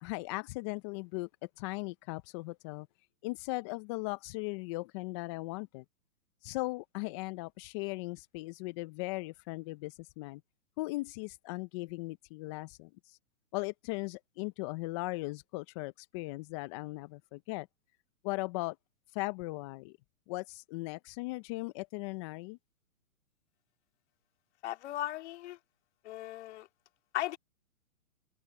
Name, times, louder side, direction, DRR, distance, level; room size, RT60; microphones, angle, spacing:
voice 1, 0.0-1.3 1.6-2.9 3.2-5.8 6.4-10.4 10.8-13.2 13.5-17.7 18.2-18.8 19.1-20.0 20.3-22.6, left 23 dB, 20° left, 0.5 m, -38 dB
voice 2, 24.6-25.6 26.0-26.7 27.1-27.4, left 14 dB, 50° left, 2.7 m, -37 dB
open air
hypercardioid pair, 135°, 42 cm